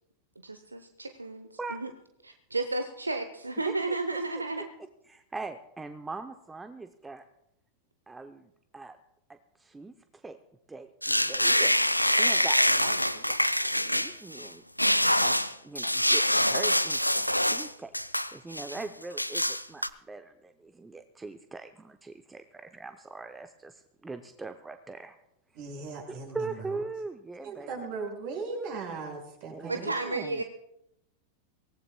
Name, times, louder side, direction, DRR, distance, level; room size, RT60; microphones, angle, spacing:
voice 1, 0.4-1.9 2.2-4.7 29.7-30.4, right 2 dB, 80° right, 8 dB, 0.8 m, -33 dB
voice 2, 3.7-4.0 5.1-7.2 8.1-9.0 9.6-10.4 10.7-11.7 12.1-13.4 13.8-14.6 15.2-15.4 15.6-17.9 18.3-25.2 26.3-27.7 29.5-30.4, right 3 dB, 10° right, 9 dB, 0.7 m, -41 dB
sound 1, 11.0-14.5 14.8-17.7 17.9-18.8 19.2-19.9, equal, 90° left, 0.4 m, -25 dB
voice 3, 25.5-26.8 27.4-29.9, right 4 dB, 45° right, 1 dB, 5.7 m, -38 dB
24.0 x 18.0 x 2.2 m, 0.82 s
figure-of-eight pair, 90°, 0 cm